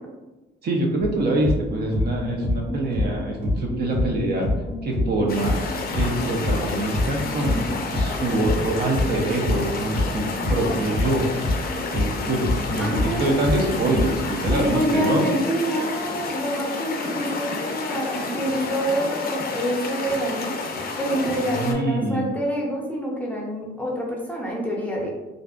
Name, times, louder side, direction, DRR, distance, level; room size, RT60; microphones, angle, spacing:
voice 1, 0.6-4.5 4.8-5.6 5.9-7.7 8.0-11.6 11.9-15.2 21.5-22.3, right 2 dB, 55° right, 0 dB, 0.5 m, -25 dB
sound 1, 1.0-14.6, left 1 dB, 80° right, 1.1 m, -27 dB
sound 2, 5.3-21.7, left 4 dB, 50° left, 0.4 m, -30 dB
voice 2, 12.8-13.3 14.5-20.6 21.0-25.1, equal, 5° left, -3 dB, 0.6 m, -26 dB
2.5 x 2.0 x 2.4 m, 1.1 s
cardioid pair, 90°, 20 cm